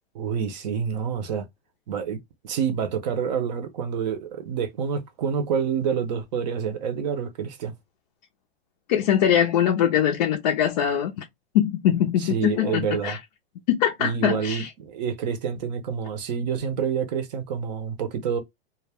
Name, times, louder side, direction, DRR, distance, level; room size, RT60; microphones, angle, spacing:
voice 1, 0.1-1.5 1.9-2.2 2.4-7.7 12.2-13.2 14.0-18.4, right 7 dB, 45° right, 0.6 m, -28 dB
voice 2, 8.9-11.2 11.5-13.2 13.7-14.7, left 10 dB, 40° left, 0.5 m, -22 dB
2.2 x 2.1 x 3.3 m
hypercardioid pair, 150°, 31 cm